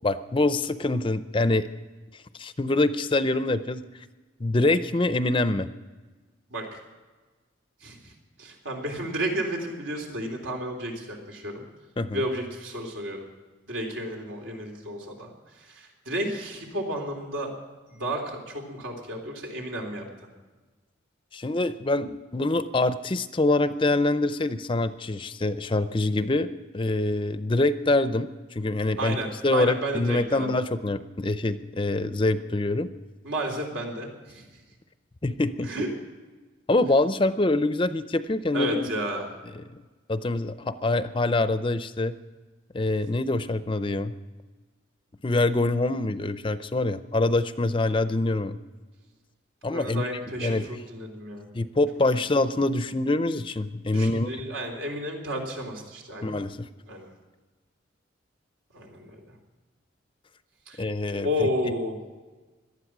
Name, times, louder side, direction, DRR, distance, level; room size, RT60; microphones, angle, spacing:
voice 1, 0.0-1.7 2.4-3.8 4.4-5.7 12.0-12.2 21.3-32.9 35.2-35.9 36.7-38.9 39.6-39.8 40.1-42.1 42.7-44.1 45.2-48.6 49.6-50.1 50.4-50.8 51.5-54.3 56.2-56.7 60.8-61.7, left 2 dB, 25° left, 12 dB, 0.5 m, -25 dB
voice 2, 7.8-8.1 8.4-11.7 12.1-13.3 13.7-15.3 15.6-17.5 17.9-20.1 29.0-30.5 33.2-34.5 35.6-35.9 38.5-39.3 49.7-51.5 53.9-56.4 56.9-57.1 58.7-59.2 60.7-60.8 61.2-62.0, equal, 85° right, 1 dB, 3.5 m, -32 dB
18.0 x 12.0 x 6.0 m, 1.3 s
head